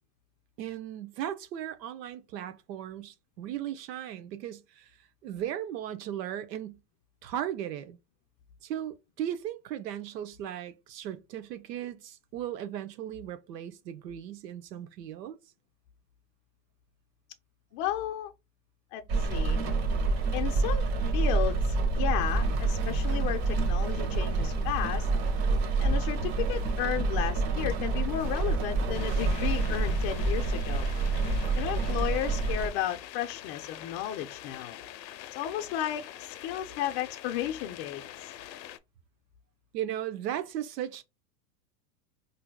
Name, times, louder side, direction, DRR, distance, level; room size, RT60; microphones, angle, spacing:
voice 1, 0.6-6.8 7.2-8.0 8.6-15.4 39.7-41.0, right 11 dB, 90° right, 0.7 m, -37 dB
voice 2, 17.7-18.3 18.9-19.0 19.3-19.6 20.3-20.9 21.1-25.1 25.8-30.9 31.6-34.8 35.3-38.0, left 11 dB, 40° left, 0.4 m, -33 dB
Rain, 19.1-32.7, right 3 dB, 55° right, 1.3 m, -28 dB
sound 1, 22.3-31.7, right 7 dB, 40° right, 0.5 m, -48 dB
sound 2, 28.9-38.8, left 12 dB, 90° left, 0.6 m, -44 dB
4.3 x 2.7 x 2.2 m
hypercardioid pair, 120°, 48 cm